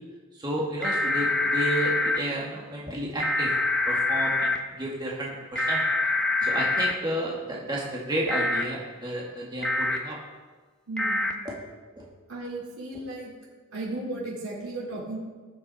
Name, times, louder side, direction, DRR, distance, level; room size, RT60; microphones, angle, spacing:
voice 1, 0.3-3.5 3.9-5.8 6.4-10.2 11.5-11.6 12.0-12.1, right 1 dB, 20° right, -4 dB, 1.8 m, -31 dB
sound 1, 0.8-2.2 3.2-4.6 5.6-6.9 8.3-8.6 9.6-10.0 11.0-11.3, left 2 dB, 5° left, 0.8 m, -25 dB
voice 2, 10.9-11.2 12.3-13.3 13.7-15.2, right 2 dB, 75° right, -4 dB, 4.0 m, -35 dB
19.0 x 7.4 x 4.1 m, 1.4 s
head